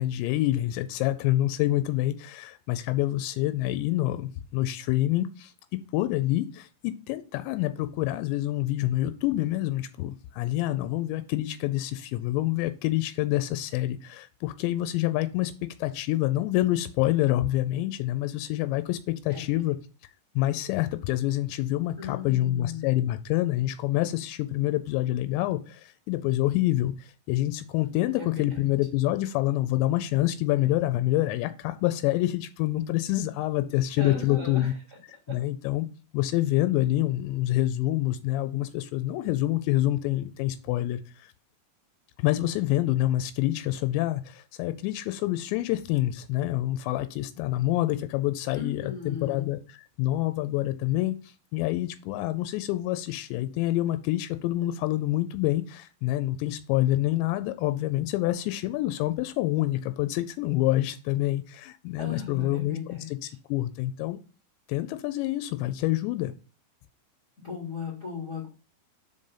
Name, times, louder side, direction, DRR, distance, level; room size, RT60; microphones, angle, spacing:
voice 1, 0.0-5.5 5.9-15.5 15.8-19.8 20.4-34.7 35.3-35.9 36.1-41.3 42.2-49.6 50.0-63.0 63.5-64.2 64.7-66.3, left 15 dB, 85° left, 11 dB, 2.8 m, -27 dB
voice 2, 22.0-23.0 28.2-28.7 34.0-35.0 35.3-35.4 48.5-49.5 62.0-63.3 67.4-68.5, left 6 dB, 50° left, -2 dB, 0.9 m, -37 dB
5.3 x 5.1 x 5.5 m, 0.35 s
omnidirectional pair, 5.1 m